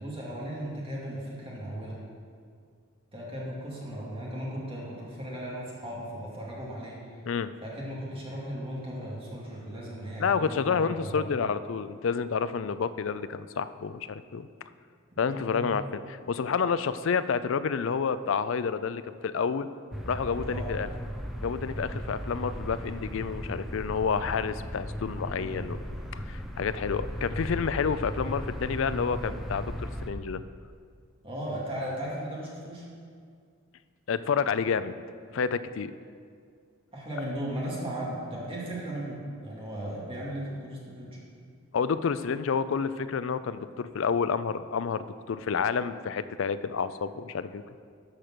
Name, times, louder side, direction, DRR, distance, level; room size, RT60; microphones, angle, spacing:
voice 1, 0.0-2.0 3.1-7.2 7.6-11.2 15.2-15.7 20.4-20.7 25.3-25.6 31.2-32.8 36.9-41.2, right 1 dB, 25° right, -5 dB, 2.2 m, -36 dB
voice 2, 10.2-14.5 15.2-19.7 20.1-20.9 21.4-25.8 26.1-30.4 34.1-34.9 35.3-35.9 41.7-47.6, left 6 dB, 65° left, 13 dB, 0.4 m, -29 dB
sound 1, 19.9-30.1, equal, ahead, 0.7 m, -36 dB
13.0 x 5.1 x 6.1 m, 2.1 s
head